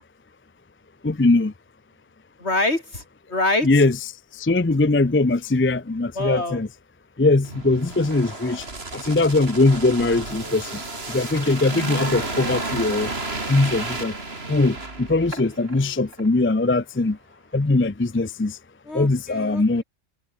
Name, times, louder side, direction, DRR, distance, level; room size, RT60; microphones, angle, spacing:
voice 1, 1.0-1.5 3.6-4.0 4.3-6.7 7.2-8.7 8.9-10.8 11.1-13.1 13.5-14.2 14.5-17.2 17.5-18.6 18.9-19.8, left 2 dB, 15° left, 0.4 m, -21 dB
voice 2, 2.4-3.0 3.3-3.7 6.2-6.6 15.7-15.9 18.9-19.8, left 2 dB, 55° left, 5.3 m, -25 dB
sound 1, 7.4-15.8 16.1-16.3, right 2 dB, 50° right, 3.7 m, -32 dB
omnidirectional pair, 1.4 m